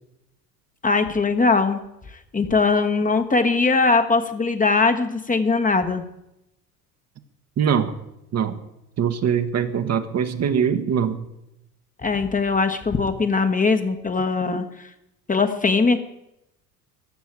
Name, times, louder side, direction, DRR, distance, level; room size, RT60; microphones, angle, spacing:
voice 1, 0.8-1.8 2.3-6.0 12.0-14.9 15.3-16.0, left 4 dB, 15° left, 8 dB, 1.3 m, -20 dB
voice 2, 7.6-7.9 8.3-8.6 9.0-11.2, right 7 dB, 35° right, 8 dB, 1.3 m, -22 dB
14.5 x 7.0 x 8.9 m, 0.85 s
figure-of-eight pair, 70°, 47 cm